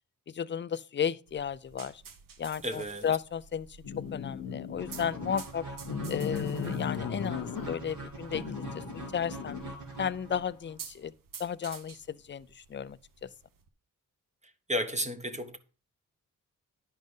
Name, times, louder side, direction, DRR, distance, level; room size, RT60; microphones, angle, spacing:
voice 1, 0.3-2.0 2.4-3.7 4.1-5.6 6.1-8.4 9.1-9.6 10.0-11.1 11.4-13.0, left 8 dB, 35° left, 0.4 m, -33 dB
sound 1, 1.3-13.7, right 6 dB, 85° right, 0.9 m, -51 dB
voice 2, 2.6-3.0 14.7-15.6, equal, 20° right, 1.1 m, -32 dB
sound 2, 3.8-5.3 5.8-7.9 8.3-9.7, left 6 dB, 85° left, 0.9 m, -37 dB
sound 3, 4.8-10.7, right 3 dB, 65° right, 2.5 m, -43 dB
10.5 x 5.2 x 3.7 m
cardioid pair, 75°, 32 cm